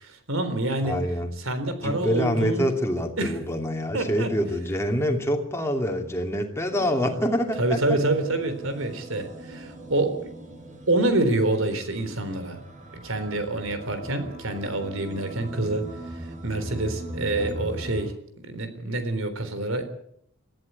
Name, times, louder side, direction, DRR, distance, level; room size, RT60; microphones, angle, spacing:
voice 1, 0.0-1.0 1.4-2.7 3.2-3.3 3.9-4.3 7.6-10.4 10.9-12.7 12.9-15.9 16.2-18.1 18.4-19.8, right 2 dB, 75° right, 10 dB, 3.8 m, -27 dB
voice 2, 0.8-1.3 1.8-8.0 17.4-17.7, equal, 15° left, 2 dB, 2.7 m, -26 dB
sound 1, 6.7-18.0, right 1 dB, 40° right, 4.4 m, -40 dB
19.5 x 14.0 x 9.5 m, 0.70 s
head